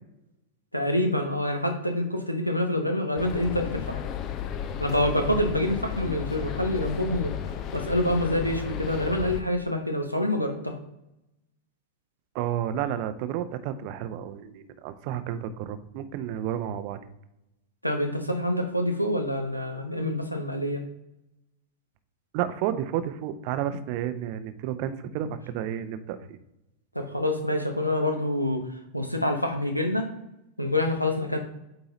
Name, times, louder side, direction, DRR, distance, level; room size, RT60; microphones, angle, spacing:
voice 1, 0.7-4.0 4.8-7.3 7.7-10.8 17.8-20.8 26.9-30.1 30.6-31.4, left 1 dB, 90° left, 5 dB, 0.8 m, -26 dB
sound 1, 3.2-9.4, left 9 dB, 35° left, 0.6 m, -33 dB
voice 2, 12.3-17.0 22.3-26.2, right 10 dB, 45° right, 11 dB, 0.6 m, -31 dB
8.6 x 3.8 x 3.0 m, 0.89 s
figure-of-eight pair, 90°, 0 cm